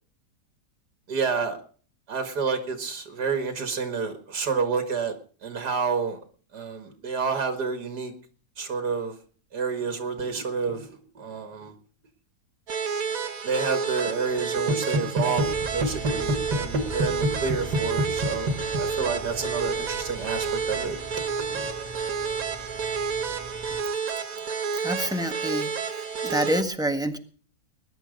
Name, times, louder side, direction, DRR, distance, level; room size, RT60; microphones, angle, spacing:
voice 1, 1.1-1.6 2.1-5.1 5.4-6.2 6.5-8.1 8.6-9.1 9.5-11.7 13.4-21.0 21.4-21.7, right 4 dB, 85° right, 7 dB, 2.4 m, -28 dB
sound 1, 12.7-26.6, right 6 dB, 60° right, 1.7 m, -30 dB
Engine, 15.3-23.8, equal, 15° left, 2.2 m, -40 dB
voice 2, 24.7-27.2, right 1 dB, 5° right, 6 dB, 1.4 m, -28 dB
20.5 x 10.5 x 5.2 m, 0.42 s
omnidirectional pair, 1.7 m